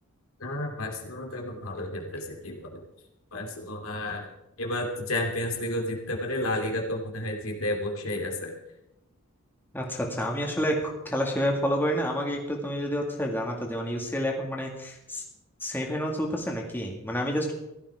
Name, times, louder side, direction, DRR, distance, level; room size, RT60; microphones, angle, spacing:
voice 1, 0.4-2.9 3.3-4.3 4.6-8.6, left 1 dB, 70° left, 2 dB, 2.7 m, -31 dB
voice 2, 9.7-15.2 15.6-17.5, equal, 10° left, 0 dB, 2.1 m, -29 dB
15.5 x 13.0 x 4.9 m, 0.88 s
head